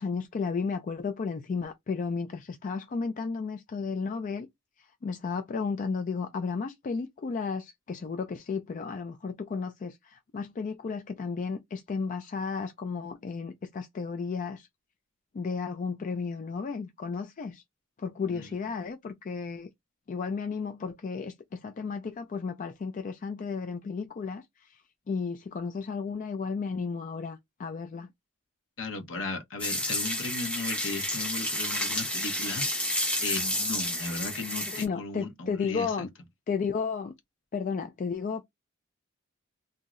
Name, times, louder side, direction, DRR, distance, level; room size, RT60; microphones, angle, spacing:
voice 1, 0.0-4.5 5.0-14.7 15.3-17.6 18.0-19.7 20.1-24.8 25.1-28.1 34.7-36.1 36.5-37.1 37.5-38.4, left 5 dB, 40° left, 0.3 m, -33 dB
voice 2, 28.8-36.1, left 3 dB, 65° left, 0.9 m, -36 dB
sound 1, 29.6-34.9, left 1 dB, 5° left, 0.7 m, -30 dB
2.7 x 2.0 x 3.6 m
head